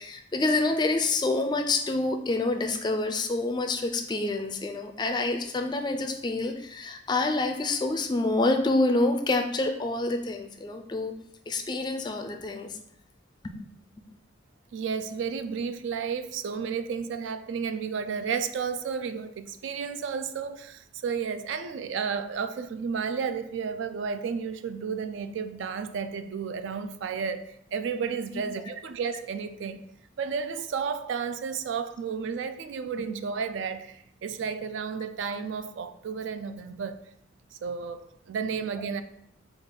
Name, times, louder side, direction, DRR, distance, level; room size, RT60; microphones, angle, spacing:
voice 1, 0.0-11.1 11.5-12.8 13.4-13.5, left 2 dB, 20° left, 0.3 m, -27 dB
voice 2, 14.7-29.8 30.2-37.0 37.5-39.0, right 6 dB, 75° right, 0.3 m, -32 dB
5.2 x 2.4 x 3.8 m
head